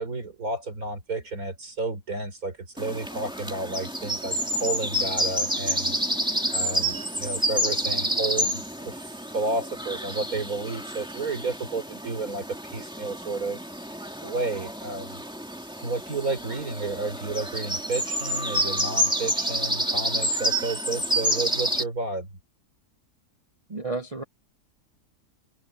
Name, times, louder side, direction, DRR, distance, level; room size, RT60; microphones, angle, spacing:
voice 1, 0.0-6.0 6.5-9.1 9.3-13.6 14.2-15.2 15.8-22.4, right 2 dB, 60° right, 4.5 m, -31 dB
Forest in spring, 2.8-21.8, equal, 5° right, 2.3 m, -29 dB
voice 2, 23.7-24.2, right 3 dB, 45° right, 0.4 m, -31 dB
omnidirectional pair, 1.7 m